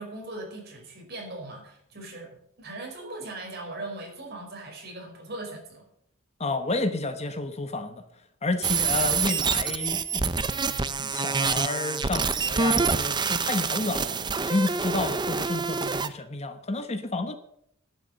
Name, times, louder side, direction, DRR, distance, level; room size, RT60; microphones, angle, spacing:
voice 1, 0.0-2.3 2.6-5.8, right 2 dB, 50° right, 0 dB, 5.1 m, -39 dB
voice 2, 6.4-8.0 8.4-14.2 14.4-17.3, left 2 dB, 30° left, 9 dB, 0.9 m, -30 dB
sound 1, 8.6-16.1, right 5 dB, 20° right, 0.6 m, -26 dB
11.5 x 8.3 x 7.9 m, 0.71 s
head